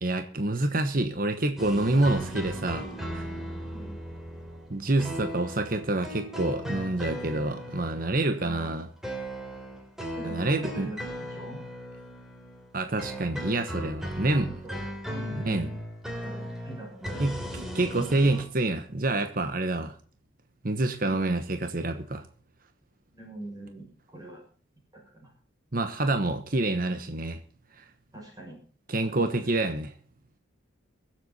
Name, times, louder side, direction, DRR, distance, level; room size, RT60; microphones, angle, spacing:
voice 1, 0.0-2.9 3.1-3.3 4.7-8.9 10.2-10.9 12.7-14.5 15.3-15.7 17.2-17.4 17.7-19.9 20.6-22.2 25.7-27.4 27.8-27.9 28.9-29.9, right 2 dB, 45° right, 7 dB, 1.2 m, -27 dB
sound 1, 1.6-12.7 13.0-18.4, equal, ahead, 3.0 m, -37 dB
voice 2, 8.4-8.8 10.2-11.6 14.3-15.8 16.2-17.3 23.1-24.4 24.9-25.3 28.1-28.6 29.0-29.6, right 1 dB, 20° right, -1 dB, 6.9 m, -43 dB
23.0 x 7.9 x 4.2 m, 0.43 s
head